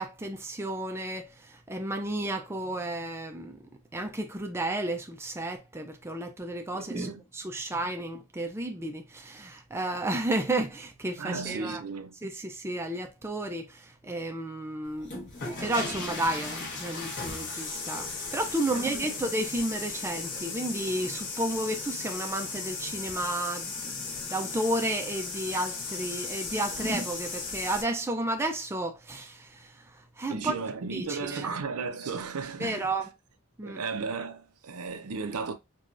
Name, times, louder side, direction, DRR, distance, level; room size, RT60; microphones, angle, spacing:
voice 1, 0.0-3.6 3.9-11.8 12.2-15.1 15.6-29.7 30.2-30.5 30.9-31.5 32.6-33.1 33.6-33.8, right 1 dB, 10° right, 0.4 m, -32 dB
voice 2, 6.7-7.2 11.2-12.2 18.7-19.2 26.7-26.8 30.3-32.9 33.6-35.5, right 4 dB, 75° right, 0.6 m, -35 dB
sound 1, 14.9-27.8, left 4 dB, 50° left, 1.1 m, -36 dB
4.7 x 2.3 x 2.5 m
head